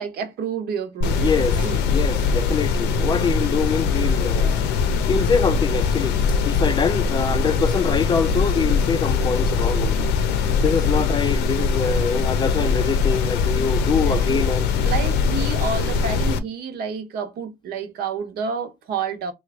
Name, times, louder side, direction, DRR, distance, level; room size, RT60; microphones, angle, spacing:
voice 1, 0.0-1.8 14.1-14.3 14.8-19.3, right 5 dB, 70° right, 1.0 m, -29 dB
sound 1, 1.0-16.4, left 5 dB, 85° left, 0.7 m, -21 dB
voice 2, 1.2-4.7 5.1-6.2 6.4-10.1 10.6-14.7, left 5 dB, 25° left, 0.4 m, -24 dB
3.1 x 2.4 x 3.4 m
cardioid pair, 110°, 17 cm